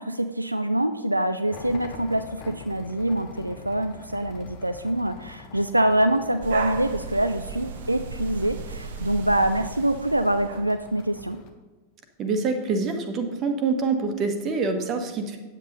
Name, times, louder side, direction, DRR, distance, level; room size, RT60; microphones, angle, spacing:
voice 1, 0.0-11.4, right 1 dB, 85° right, 9 dB, 0.4 m, -25 dB
sound 1, 1.5-11.5, left 4 dB, 45° left, 1.2 m, -45 dB
sound 2, 6.4-10.7, right 6 dB, 60° right, 0.8 m, -35 dB
voice 2, 12.2-15.4, right 4 dB, 30° right, 5 dB, 1.3 m, -26 dB
8.8 x 8.2 x 4.0 m, 1.3 s
figure-of-eight pair, 90°, 0 cm